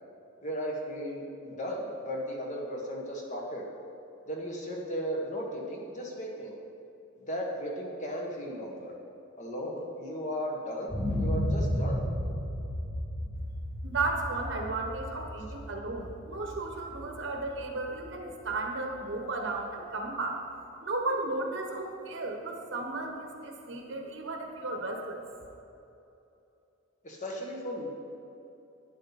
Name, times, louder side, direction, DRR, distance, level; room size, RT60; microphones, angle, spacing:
voice 1, 0.4-3.7 4.3-6.5 7.2-8.9 9.4-12.0 27.0-27.9, equal, 35° left, -2 dB, 1.7 m, -36 dB
sound 1, 10.9-18.8 19.2-19.3, equal, 5° left, 1.3 m, -34 dB
voice 2, 13.8-20.4 20.8-25.2, right 2 dB, 60° right, 2 dB, 1.2 m, -34 dB
11.5 x 9.7 x 4.2 m, 2.9 s
head